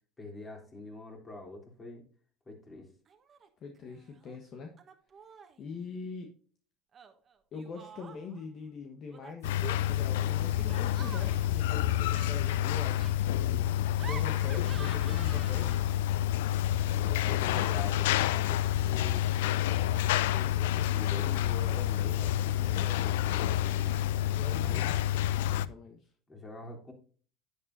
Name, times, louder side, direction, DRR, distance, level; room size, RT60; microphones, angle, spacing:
voice 1, 0.2-2.0 2.4-2.9 16.9-19.3 20.3-24.0 24.6-24.9 26.3-26.9, left 2 dB, 25° left, 1 dB, 3.5 m, -45 dB
Laughter, 3.1-3.5 3.8-4.4 4.8-5.6 6.9-8.4 9.1-16.1, right 6 dB, 35° right, 1.3 m, -49 dB
voice 2, 3.6-4.7 5.6-6.3 7.5-13.7 14.0-15.8 24.3-26.1, left 4 dB, 50° left, 4 dB, 1.4 m, -43 dB
sound 1, 9.4-25.7, left 12 dB, 80° left, 0.4 m, -28 dB
10.5 x 8.4 x 2.7 m, 0.44 s
hypercardioid pair, 85°, 0 cm